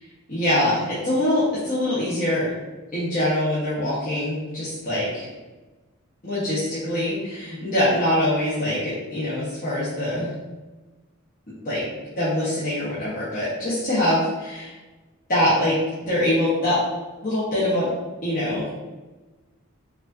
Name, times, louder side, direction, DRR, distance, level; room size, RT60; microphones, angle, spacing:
voice 1, 0.3-2.5 2.9-5.3 6.2-10.3 11.6-11.8 12.1-14.7 15.3-15.8 16.0-16.8 17.2-17.9 18.2-18.7, left 1 dB, 40° left, -11 dB, 1.1 m, -23 dB
4.6 x 2.7 x 2.7 m, 1.2 s
head